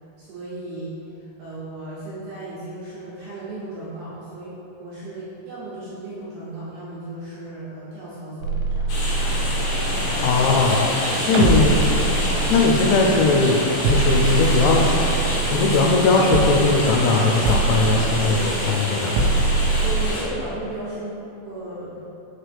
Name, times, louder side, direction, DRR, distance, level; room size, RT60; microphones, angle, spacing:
voice 1, 0.2-1.0 1.4-9.1 19.7-22.0, right 2 dB, 75° right, -9 dB, 2.5 m, -35 dB
sound 1, 8.4-11.0 11.3-13.4 13.8-16.1 16.3-17.0 17.5-18.7 19.2-20.1, right 3 dB, 90° right, 3.1 m, -23 dB
sound 2, 8.9-20.2, left 1 dB, 65° left, 2.2 m, -26 dB
voice 2, 10.2-10.9 11.3-11.8 12.5-13.6 13.9-14.8 15.5-19.2, left 3 dB, 85° left, 1 dB, 2.8 m, -19 dB
6.2 x 4.6 x 3.4 m, 2.9 s
omnidirectional pair, 5.4 m